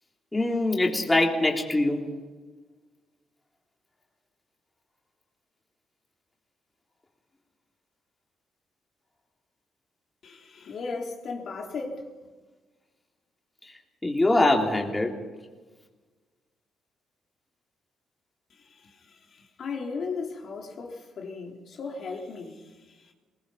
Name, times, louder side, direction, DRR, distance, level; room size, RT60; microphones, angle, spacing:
voice 1, 0.3-2.0 13.6-15.1, left 2 dB, 15° left, 3.5 m, -23 dB
voice 2, 10.2-12.3 18.5-23.1, left 4 dB, 60° left, 3.5 m, -37 dB
22.5 x 20.0 x 5.8 m
cardioid pair, 90°, 0 cm